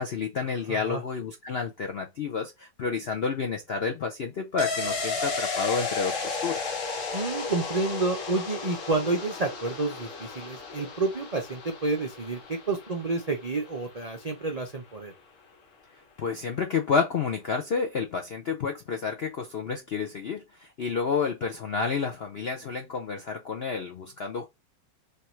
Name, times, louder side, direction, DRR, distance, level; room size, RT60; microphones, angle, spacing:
voice 1, 0.0-6.7 16.2-24.5, left 5 dB, 70° left, 0.5 m, -30 dB
voice 2, 0.7-1.0 7.1-15.1, right 3 dB, 80° right, 0.3 m, -29 dB
sound 1, 4.6-14.0 14.3-14.4, left 4 dB, 50° left, 1.3 m, -34 dB
3.4 x 2.6 x 4.3 m
omnidirectional pair, 1.9 m